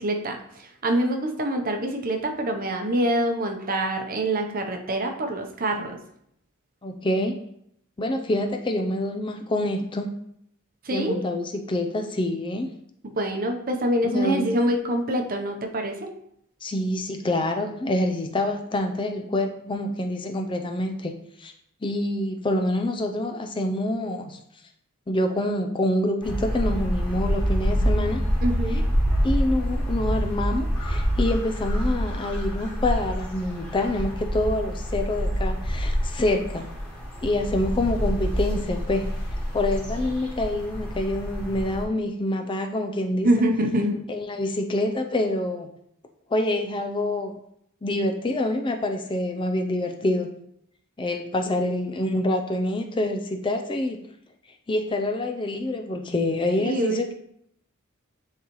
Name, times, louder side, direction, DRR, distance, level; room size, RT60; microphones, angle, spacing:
voice 1, 0.0-6.0 10.8-11.3 13.1-16.1 28.4-28.9 43.2-44.1 56.6-57.1, right 1 dB, 40° right, 4 dB, 0.8 m, -25 dB
voice 2, 6.8-7.5 8.0-10.1 10.9-12.7 14.0-14.5 16.6-21.5 21.8-24.4 25.1-28.2 29.2-36.7 37.2-39.1 39.5-43.3 44.1-45.7 46.3-47.3 47.8-50.4 51.0-54.0 54.7-57.1, left 1 dB, 25° left, 5 dB, 0.4 m, -26 dB
sound 1, 26.2-41.8, equal, 5° left, 1.6 m, -27 dB
9.6 x 3.9 x 3.1 m, 0.71 s
head